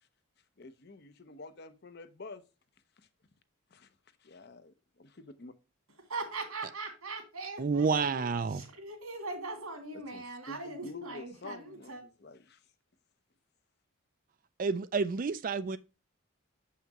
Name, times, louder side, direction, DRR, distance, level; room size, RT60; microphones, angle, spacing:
voice 1, 0.6-2.4 3.7-3.9 4.2-5.5 9.9-12.6, left 3 dB, 50° left, 0.7 m, -48 dB
voice 2, 6.1-12.0, right 3 dB, 85° right, 2.4 m, -41 dB
voice 3, 7.6-8.6 14.6-15.8, right 4 dB, 40° right, 0.4 m, -29 dB
7.3 x 5.7 x 2.9 m
head